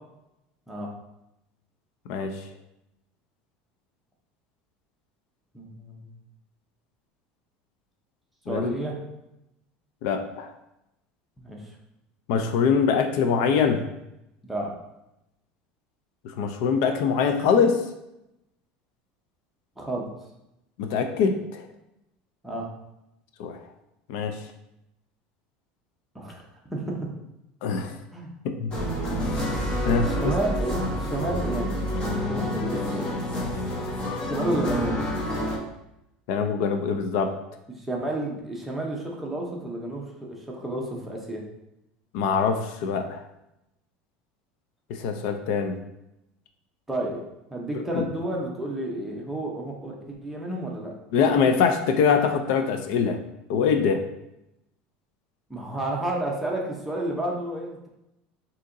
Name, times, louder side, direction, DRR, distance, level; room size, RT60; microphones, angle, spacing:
voice 1, 2.1-2.4 8.5-8.7 10.0-10.5 12.3-13.8 16.2-17.8 20.8-21.7 23.4-23.6 24.1-24.4 27.6-28.0 28.4-28.7 29.9-30.3 36.3-37.3 42.1-43.2 44.9-45.8 47.9-48.1 51.1-53.2 53.5-54.1, left 6 dB, 60° left, 6 dB, 0.4 m, -23 dB
voice 2, 5.5-6.1 8.5-9.0 11.4-11.6 14.4-14.7 19.8-20.1 22.4-22.7 26.1-27.0 28.1-28.3 30.1-33.2 34.2-35.0 37.8-41.4 46.9-47.2 47.5-50.9 51.3-51.4 55.5-57.9, right 1 dB, 5° right, -2 dB, 0.6 m, -31 dB
sound 1, 28.7-35.6, left 1 dB, 25° left, 0.8 m, -28 dB
6.3 x 2.8 x 2.6 m, 0.87 s
cardioid pair, 175°, 4 cm